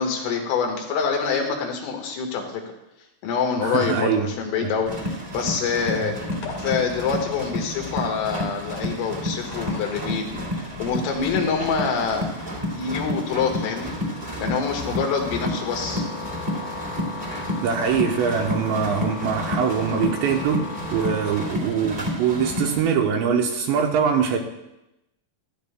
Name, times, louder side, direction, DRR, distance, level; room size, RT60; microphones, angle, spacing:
voice 1, 0.0-2.6 3.2-6.2 6.6-13.9 14.4-16.0, left 6 dB, 85° left, 1 dB, 4.1 m, -26 dB
voice 2, 3.6-4.3 4.6-4.7 6.0-6.1 17.6-20.6 20.9-24.4, right 7 dB, 75° right, 2 dB, 2.8 m, -23 dB
sound 1, 4.8-22.8, left 1 dB, 20° right, 1.2 m, -30 dB
sound 2, 6.3-21.4, left 3 dB, 55° left, 2.1 m, -39 dB
15.0 x 12.5 x 2.2 m, 0.91 s
omnidirectional pair, 5.7 m